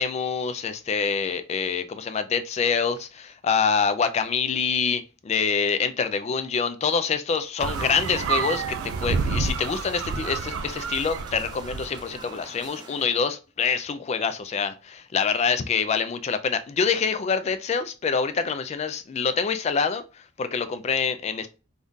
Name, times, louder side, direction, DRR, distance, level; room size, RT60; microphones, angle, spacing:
voice 1, 0.0-20.0 20.4-21.5, left 5 dB, 35° left, 0.3 m, -26 dB
sound 1, 7.6-12.1, right 5 dB, 85° right, 0.3 m, -29 dB
sound 2, 7.7-13.1, right 3 dB, 20° right, 0.5 m, -45 dB
3.6 x 2.3 x 2.6 m
head